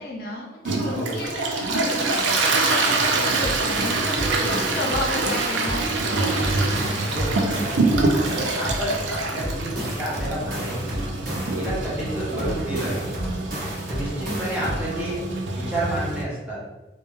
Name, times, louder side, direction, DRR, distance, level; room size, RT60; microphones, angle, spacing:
voice 1, 0.0-4.2 4.6-7.2 12.2-12.5 14.2-15.0, left 2 dB, 55° left, -2 dB, 0.6 m, -33 dB
Toilet flush, 0.6-16.2, right 3 dB, 80° right, 0.4 m, -25 dB
voice 2, 0.9-1.2 4.2-4.6 7.0-7.8 8.3-11.2 11.6-13.1 13.9-15.2 15.5-16.6, right 1 dB, 5° right, -7 dB, 0.7 m, -30 dB
sound 1, 3.3-5.9 6.2-8.9 9.2-11.9 12.2-14.9, equal, 50° right, 0.9 m, -32 dB
2.2 x 2.1 x 3.1 m, 1.1 s
head